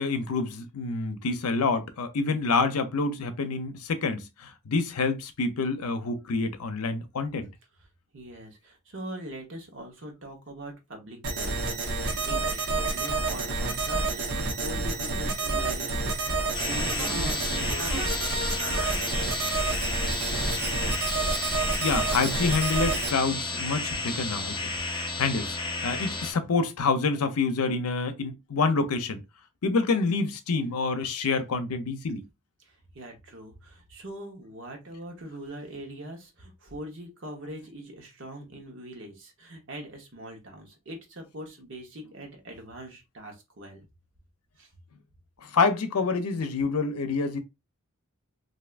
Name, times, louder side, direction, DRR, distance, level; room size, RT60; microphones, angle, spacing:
voice 1, 0.0-7.5 21.8-24.6 25.2-29.2 29.6-32.2 45.4-47.4, left 4 dB, 85° left, 0.6 m, -27 dB
voice 2, 8.1-19.9 32.6-43.8 44.6-44.7, right 1 dB, 60° right, 1.0 m, -42 dB
sound 1, 11.2-23.1, right 3 dB, 85° right, 0.9 m, -29 dB
sound 2, 16.5-26.3, left 3 dB, 20° left, 0.5 m, -32 dB
3.3 x 2.6 x 2.4 m
head